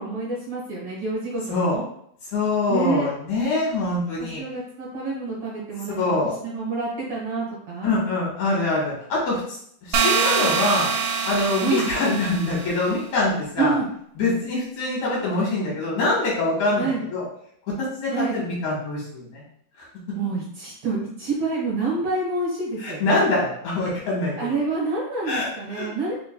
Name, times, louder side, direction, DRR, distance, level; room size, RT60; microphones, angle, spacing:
voice 1, 0.0-1.8 2.7-3.1 4.2-7.9 11.6-11.9 13.6-13.9 16.8-17.0 18.1-18.4 20.1-23.2 24.4-26.1, right 3 dB, 55° right, -5 dB, 1.9 m, -27 dB
voice 2, 2.3-4.4 6.0-6.3 7.8-9.4 9.8-10.9 11.2-13.7 14.2-17.2 17.7-19.4 19.8-19.9 22.8-24.5 25.2-25.9, left 2 dB, 70° left, -5 dB, 2.8 m, -24 dB
sound 1, 9.9-12.8, right 5 dB, 85° right, 2.1 m, -24 dB
4.6 x 4.5 x 2.2 m, 0.66 s
omnidirectional pair, 3.6 m